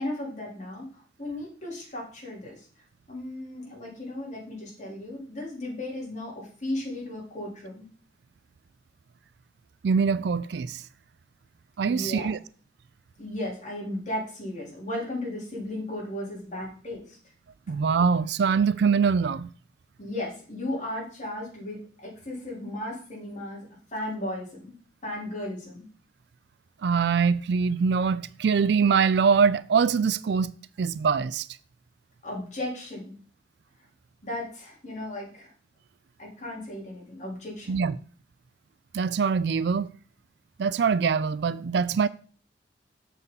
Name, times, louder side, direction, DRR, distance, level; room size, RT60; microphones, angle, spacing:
voice 1, 0.0-2.7 3.1-7.9 11.9-12.3 13.2-17.2 20.0-24.7 25.0-25.8 32.2-33.1 34.2-35.5 36.2-37.8, left 1 dB, 40° left, 3.7 m, -35 dB
voice 2, 9.8-10.8 11.8-12.4 17.7-19.5 26.8-30.5 30.8-31.5 37.7-38.0 38.9-39.9 40.6-42.1, right 6 dB, 65° right, 0.4 m, -23 dB
7.4 x 6.9 x 4.0 m
head